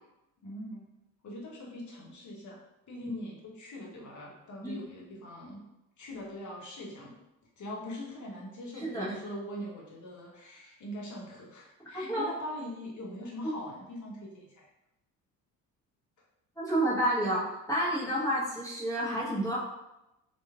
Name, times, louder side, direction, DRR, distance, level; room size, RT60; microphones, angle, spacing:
voice 1, 0.4-0.9 1.2-2.6 2.9-5.6 6.0-7.2 7.6-14.7, left 1 dB, 35° left, -3 dB, 0.9 m, -42 dB
voice 2, 8.8-9.2 11.9-12.3 13.4-13.5 16.6-19.6, right 1 dB, 5° left, -8 dB, 0.8 m, -30 dB
3.0 x 2.4 x 2.3 m, 0.90 s
figure-of-eight pair, 50°, 50 cm